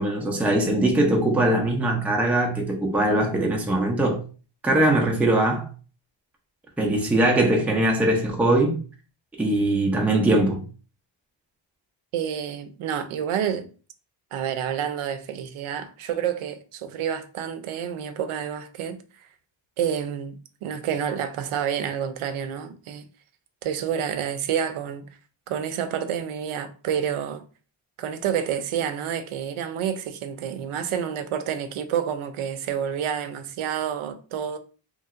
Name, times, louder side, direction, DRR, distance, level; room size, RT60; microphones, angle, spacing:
voice 1, 0.0-4.2 4.6-5.7 6.8-8.8 9.4-10.6, right 1 dB, 5° right, 0.3 m, -21 dB
voice 2, 12.1-13.7 14.3-19.0 19.8-23.0 23.6-25.1 25.5-27.4 28.0-34.6, right 8 dB, 90° right, 0.6 m, -29 dB
2.8 x 2.8 x 2.4 m
wide cardioid pair, 170°, 48 cm